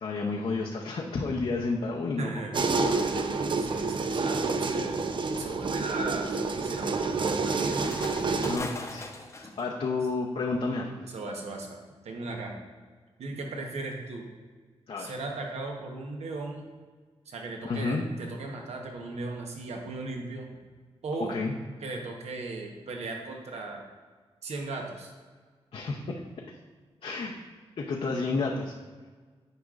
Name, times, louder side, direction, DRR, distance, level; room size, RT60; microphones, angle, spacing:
voice 1, 0.0-3.9 8.4-10.9 14.9-15.1 17.6-18.0 21.3-21.5 25.7-26.0 27.0-27.3 27.8-28.7, left 3 dB, 60° left, -1 dB, 0.6 m, -31 dB
voice 2, 2.2-2.6 3.6-5.0 5.4-7.8 11.0-11.8 12.0-12.5 13.2-14.2 15.0-16.7 17.3-20.5 21.0-21.4 21.8-23.8 24.4-25.1, right 3 dB, 75° right, 1 dB, 1.0 m, -37 dB
sound 1, 2.5-8.6, right 4 dB, 45° right, 0.5 m, -28 dB
sound 2, 5.4-9.6, left 2 dB, 25° left, 0.7 m, -42 dB
9.5 x 5.0 x 2.4 m, 1.5 s
cardioid pair, 75°, 11 cm